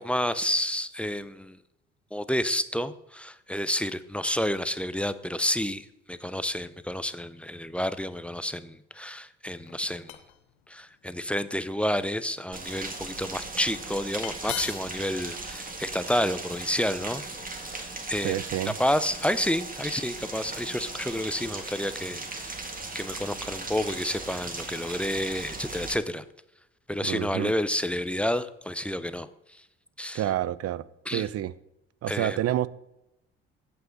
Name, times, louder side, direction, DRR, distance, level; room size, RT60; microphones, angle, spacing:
voice 1, 0.0-1.6 2.1-10.2 10.7-17.2 17.5-18.4 18.8-22.6 22.9-26.2 26.9-29.3 30.0-30.2 31.1-31.3 32.1-32.4, equal, 5° left, 0.6 m, -30 dB
sound 1, 9.6-10.4 11.1-11.4 12.0-12.8 13.9-14.0 14.2-15.0, left 13 dB, 80° left, 0.9 m, -38 dB
Rain, 12.5-26.0, right 3 dB, 30° right, 1.9 m, -38 dB
voice 2, 18.2-18.7 27.0-27.5 30.1-30.8 31.1-31.5 32.0-32.7, right 12 dB, 55° right, 0.6 m, -28 dB
16.0 x 5.6 x 3.9 m
hypercardioid pair, 60°, 30 cm